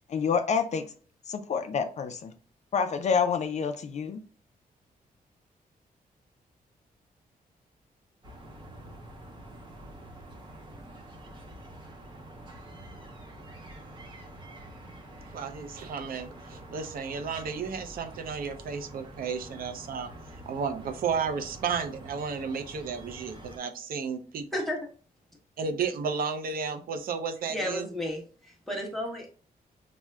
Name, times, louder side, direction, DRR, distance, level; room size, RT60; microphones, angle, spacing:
voice 1, 0.1-0.9 1.3-2.3 2.7-4.2, left 6 dB, 50° left, 0.4 m, -28 dB
sound 1, 8.2-23.6, right 1 dB, 30° right, 0.8 m, -47 dB
voice 2, 15.3-20.1 20.5-24.5 25.6-27.8, right 6 dB, 70° right, 0.5 m, -33 dB
voice 3, 24.5-24.9 27.5-29.3, left 1 dB, ahead, 1.0 m, -33 dB
5.9 x 2.1 x 2.2 m
wide cardioid pair, 135°, 15 cm